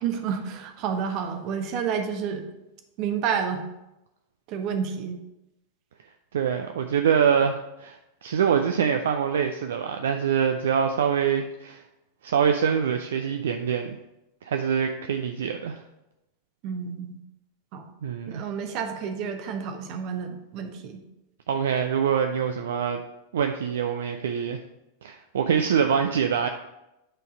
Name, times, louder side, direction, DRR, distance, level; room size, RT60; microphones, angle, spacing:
voice 1, 0.0-2.5 3.0-3.7 4.5-5.2 16.6-17.2 17.7-17.9 18.3-21.0, right 7 dB, 40° right, 6 dB, 1.0 m, -30 dB
voice 2, 6.3-11.8 12.2-14.0 14.4-15.8 18.0-18.4 21.5-23.0 23.3-24.6 25.0-26.5, right 7 dB, 60° right, 6 dB, 0.4 m, -24 dB
8.9 x 4.0 x 4.8 m, 0.93 s
figure-of-eight pair, 90°, 0 cm